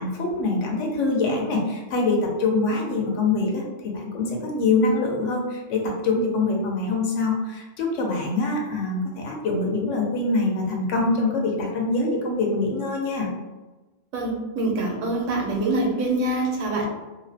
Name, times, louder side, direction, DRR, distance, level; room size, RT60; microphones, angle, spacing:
voice 1, 0.0-13.3, left 3 dB, 75° left, 0 dB, 0.9 m, -24 dB
voice 2, 14.1-16.9, right 2 dB, 85° right, 0 dB, 1.0 m, -25 dB
2.6 x 2.1 x 2.6 m, 1.1 s
omnidirectional pair, 1.3 m